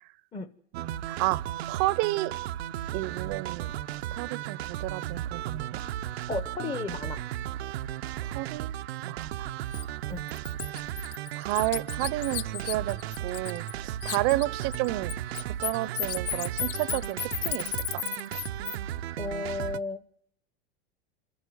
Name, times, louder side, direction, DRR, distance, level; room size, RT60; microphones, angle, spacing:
voice 1, 0.7-1.4 1.7-2.3 2.9-3.7 4.1-5.8 8.2-8.8 9.0-9.5 11.4-18.0, right 19 dB, 50° right, 20 dB, 0.8 m, -31 dB
sound 1, 0.7-19.8, right 12 dB, 90° right, 0.8 m, -35 dB
voice 2, 6.3-7.2 10.1-10.2 19.2-20.0, left 4 dB, 15° left, 8 dB, 1.0 m, -33 dB
Bird, 9.7-9.8 10.3-13.7 14.0-18.8, left 12 dB, 60° left, 1.0 m, -34 dB
27.0 x 11.5 x 9.3 m, 0.67 s
supercardioid pair, 140°, 31 cm